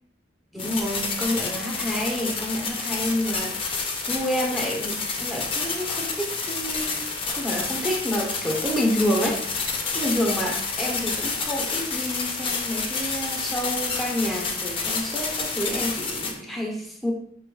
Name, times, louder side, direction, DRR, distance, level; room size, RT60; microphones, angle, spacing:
voice 1, 0.5-3.6 4.1-17.1, equal, ahead, -1 dB, 0.8 m, -29 dB
sound 1, 0.6-16.3, left 4 dB, 30° left, 0.6 m, -29 dB
4.2 x 2.3 x 4.5 m, 0.67 s
head